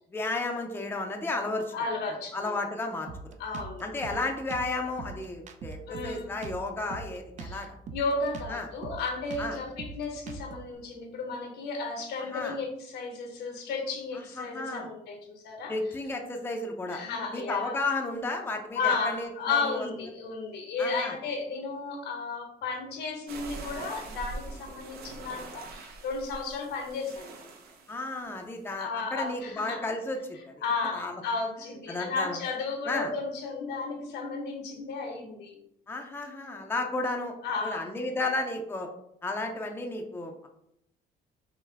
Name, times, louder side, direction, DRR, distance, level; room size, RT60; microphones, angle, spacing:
voice 1, 0.1-1.7 2.3-3.3 3.8-7.8 8.5-8.7 9.4-9.6 12.2-12.6 14.1-14.9 15.7-17.0 17.3-19.9 20.8-21.1 27.9-30.5 30.9-31.1 31.9-32.4 32.8-33.1 35.9-37.3 37.6-38.9 39.2-40.5, left 2 dB, 10° left, 3 dB, 0.5 m, -33 dB
voice 2, 1.7-2.6 3.4-3.8 5.9-6.3 7.4-7.7 7.9-15.7 16.9-17.8 18.8-27.3 28.8-29.8 30.6-35.6 37.4-37.8, left 4 dB, 80° left, 2 dB, 1.1 m, -33 dB
Drum kit, 3.1-10.7, right 4 dB, 45° right, 0.5 m, -42 dB
sound 1, 23.3-28.7, right 3 dB, 65° right, 0.8 m, -43 dB
5.5 x 2.2 x 3.4 m, 0.76 s
cardioid pair, 110°, 17 cm